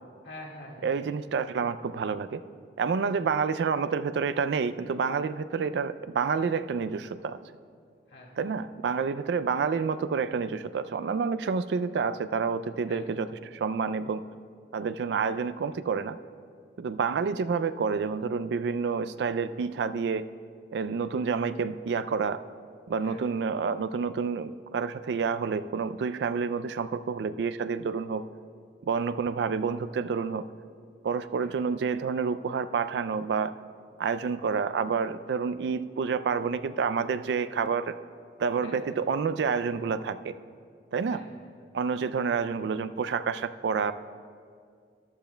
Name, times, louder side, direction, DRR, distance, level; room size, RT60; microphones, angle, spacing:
voice 1, 0.2-1.0 5.6-5.7 8.1-8.4 12.9-13.1 23.0-23.3 31.4-31.8 38.6-39.0 41.1-41.7, left 1 dB, 90° left, -2 dB, 1.8 m, -47 dB
voice 2, 0.8-2.4 2.8-7.4 8.4-14.2 14.7-16.2 16.8-20.3 20.7-22.4 22.9-28.2 28.8-30.4 31.0-33.5 34.0-37.9 38.4-40.3 40.9-41.2 41.7-43.9, right 5 dB, 70° right, 13 dB, 0.3 m, -29 dB
14.0 x 11.5 x 2.2 m, 2.2 s
head